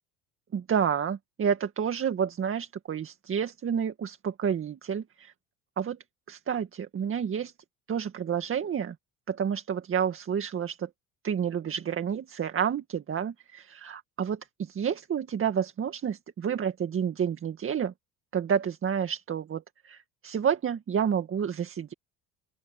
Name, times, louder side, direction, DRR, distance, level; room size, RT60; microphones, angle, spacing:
voice 1, 0.5-5.3 5.8-6.0 6.3-7.5 7.9-9.0 9.3-10.9 11.2-17.9 18.3-21.9, right 7 dB, 35° right, 2.1 m, -30 dB
open air
supercardioid pair, 95°, 36 cm